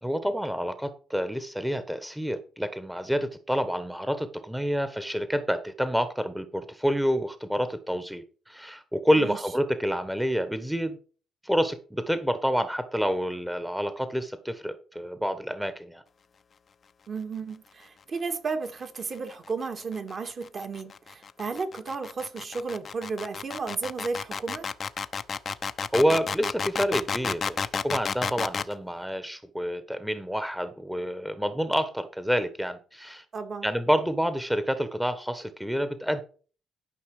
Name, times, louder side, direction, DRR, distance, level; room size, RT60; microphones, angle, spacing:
voice 1, 0.0-11.0 11.4-16.0 25.9-33.2 33.6-36.2, equal, 5° right, 1.3 m, -28 dB
voice 2, 17.1-24.7 33.3-33.7, right 4 dB, 45° right, 2.4 m, -33 dB
sound 1, 19.5-28.7, left 6 dB, 45° left, 0.8 m, -31 dB
12.5 x 5.5 x 4.9 m
cardioid pair, 90°, 0 cm